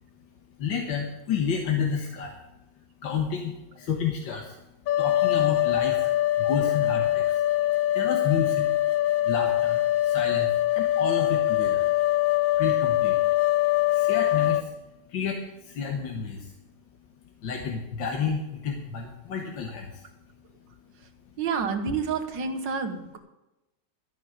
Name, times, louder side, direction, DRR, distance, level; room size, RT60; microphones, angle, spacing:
voice 1, 0.6-2.4 2.8-4.7 5.0-7.4 7.9-8.8 9.0-11.9 12.5-13.3 13.9-14.7 15.1-16.6 17.2-20.1 20.4-20.7, left 6 dB, 90° left, 1 dB, 2.0 m, -31 dB
sound 1, 4.9-14.6, left 14 dB, 60° left, 0.9 m, -23 dB
voice 2, 21.4-23.2, right 5 dB, 80° right, 6 dB, 1.9 m, -29 dB
13.0 x 6.2 x 9.0 m, 0.96 s
omnidirectional pair, 2.0 m